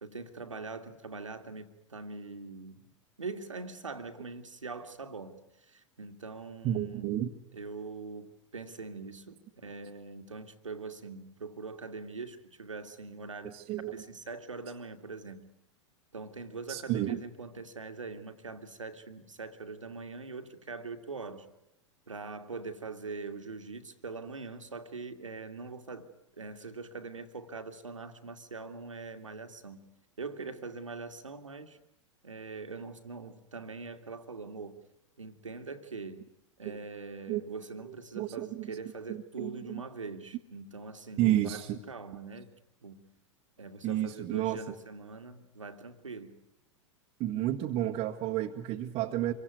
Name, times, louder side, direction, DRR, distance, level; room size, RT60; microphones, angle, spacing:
voice 1, 0.0-7.1 7.5-15.5 16.1-21.5 22.1-26.1 26.4-29.9 30.2-31.8 32.2-34.8 35.2-36.3 36.6-42.5 42.8-43.1 43.6-46.4, right 4 dB, 80° right, 7 dB, 2.3 m, -43 dB
voice 2, 6.6-7.3 13.4-14.0 16.7-17.2 36.6-36.8 37.3-37.4 38.1-38.7 39.1-39.8 41.2-41.8 43.8-44.6 47.2-49.3, right 13 dB, 35° right, 0 dB, 1.7 m, -31 dB
27.0 x 23.5 x 9.4 m, 0.82 s
figure-of-eight pair, 90°, 16 cm